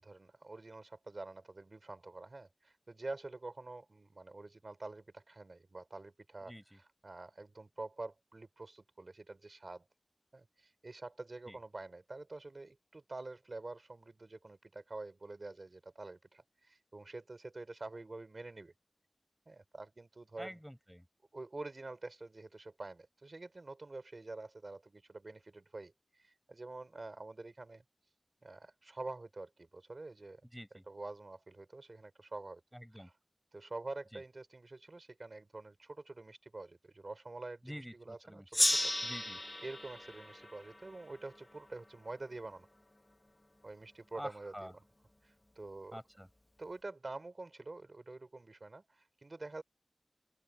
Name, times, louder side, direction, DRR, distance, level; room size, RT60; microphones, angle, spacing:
voice 1, 0.0-9.9 10.3-18.7 19.5-20.6 21.3-27.8 28.4-30.4 30.9-32.6 32.9-33.2 33.5-38.7 39.6-42.7 43.6-44.7 45.2-46.0 46.6-49.6, right 2 dB, 70° right, 4.4 m, -47 dB
voice 2, 6.5-6.8 11.5-11.6 20.4-21.1 30.5-30.8 32.7-33.1 34.1-34.2 37.6-38.5 39.0-39.4 44.2-44.7 45.9-46.3, equal, ahead, 7.6 m, -47 dB
Gong, 38.5-41.7, left 1 dB, 30° left, 1.1 m, -34 dB
open air
wide cardioid pair, 50°, 0 cm